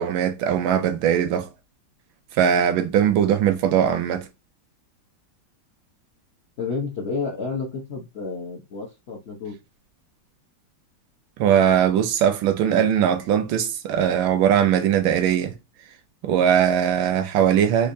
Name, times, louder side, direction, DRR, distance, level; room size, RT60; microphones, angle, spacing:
voice 1, 0.0-1.5 2.4-4.3 11.4-15.5 16.2-17.9, right 9 dB, 75° right, 1.3 m, -20 dB
voice 2, 6.6-9.5, left 4 dB, 60° left, 0.6 m, -30 dB
4.4 x 2.5 x 2.6 m
omnidirectional pair, 2.2 m